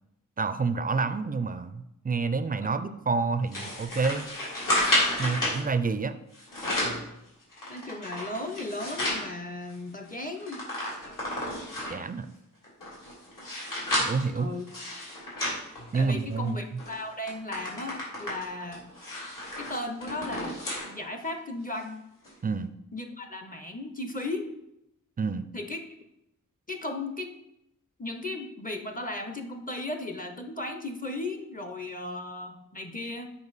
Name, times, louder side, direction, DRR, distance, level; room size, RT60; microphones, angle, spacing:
voice 1, 0.4-4.3 5.2-6.1 11.9-12.3 14.0-14.5 15.9-16.6 22.4-22.7 25.2-25.5, right 4 dB, 25° right, 11 dB, 0.4 m, -28 dB
sound 1, 3.5-5.6 6.3-7.0 7.5-9.2 9.7-9.8 10.0-12.1 12.6-16.4 16.8-17.0 17.3-20.9 21.3-21.4 22.2-22.3, left 1 dB, 75° left, 2.7 m, -31 dB
voice 2, 7.7-10.7 14.3-14.7 15.9-18.9 19.6-22.0 22.9-24.6 25.5-25.8 26.7-27.3 28.0-33.3, left 2 dB, 25° left, 6 dB, 0.6 m, -36 dB
7.1 x 5.1 x 4.0 m, 0.85 s
wide cardioid pair, 125°, 33 cm